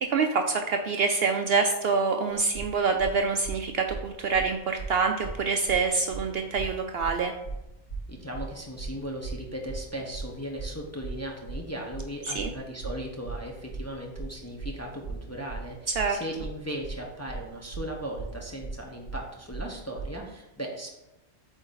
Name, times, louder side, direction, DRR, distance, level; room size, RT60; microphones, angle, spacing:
voice 1, 0.0-7.3 12.2-12.5 16.0-16.2, right 4 dB, 60° right, 5 dB, 0.7 m, -26 dB
sound 1, 2.3-20.2, right 4 dB, 75° left, 3.2 m, -38 dB
voice 2, 8.1-21.0, equal, 15° left, 0 dB, 0.7 m, -37 dB
7.9 x 4.1 x 3.9 m, 0.93 s
omnidirectional pair, 1.3 m